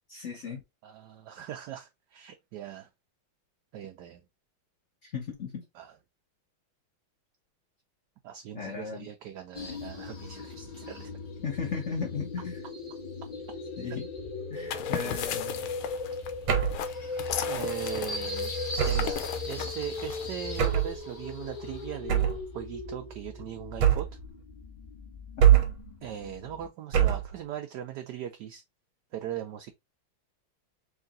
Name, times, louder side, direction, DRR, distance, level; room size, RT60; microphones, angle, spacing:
voice 1, 0.1-0.6 5.0-5.6 8.5-9.1 11.4-12.6 13.8-14.1 14.5-15.7 25.5-25.6, left 5 dB, 50° left, 0.8 m, -36 dB
voice 2, 0.8-2.9 3.7-4.2 5.7-6.0 8.2-11.1 15.0-15.2 17.4-18.5 18.8-24.1 26.0-28.6 29.1-29.7, right 10 dB, 70° right, 1.0 m, -39 dB
sound 1, 9.5-26.7, left 3 dB, 25° left, 0.9 m, -38 dB
sound 2, 14.5-20.6, left 9 dB, 85° left, 1.5 m, -37 dB
sound 3, 16.5-16.9 18.8-19.2 20.6-21.0 22.1-22.5 23.8-24.3 25.4-25.9 26.9-27.4, right 10 dB, 85° right, 1.8 m, -23 dB
3.7 x 3.2 x 3.7 m
omnidirectional pair, 2.3 m